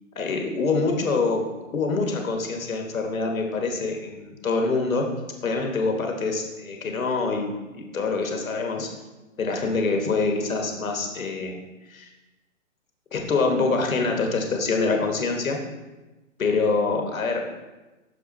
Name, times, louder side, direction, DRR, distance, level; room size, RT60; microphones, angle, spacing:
voice 1, 0.1-1.4 1.7-5.1 5.4-8.9 9.4-11.6 11.9-12.1 13.1-15.6 16.4-17.4, left 4 dB, 90° left, 3 dB, 1.3 m, -25 dB
6.4 x 5.3 x 4.1 m, 1.1 s
hypercardioid pair, 140°, 40 cm